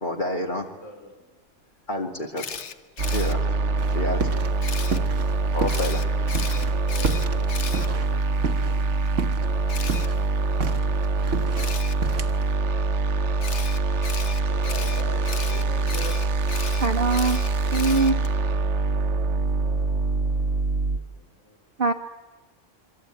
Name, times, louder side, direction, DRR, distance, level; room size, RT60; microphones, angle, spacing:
voice 1, 0.0-0.7 1.9-2.4 3.1-3.4 3.9-4.3 5.5-6.0, left 1 dB, 40° left, 2 dB, 2.2 m, -28 dB
voice 2, 0.7-1.3 1.6-1.7 5.7-9.1 14.4-16.3 20.9-21.6, equal, 80° left, 4 dB, 4.3 m, -43 dB
Camera, 2.4-3.3 4.6-5.0 5.7-8.4 9.7-10.1 11.6-11.9 13.4-18.3, left 6 dB, 65° left, 1.5 m, -36 dB
sound 1, 3.0-21.0, right 3 dB, 70° right, 1.4 m, -24 dB
sound 2, 3.8-4.5 4.8-5.9 6.3-8.9 9.2-9.5 9.8-12.5, right 4 dB, 85° right, 1.6 m, -31 dB
voice 3, 16.8-17.4 17.7-18.2 21.8-21.9, right 3 dB, 50° right, 3 dB, 1.2 m, -22 dB
27.0 x 23.0 x 9.1 m, 1.2 s
omnidirectional pair, 1.3 m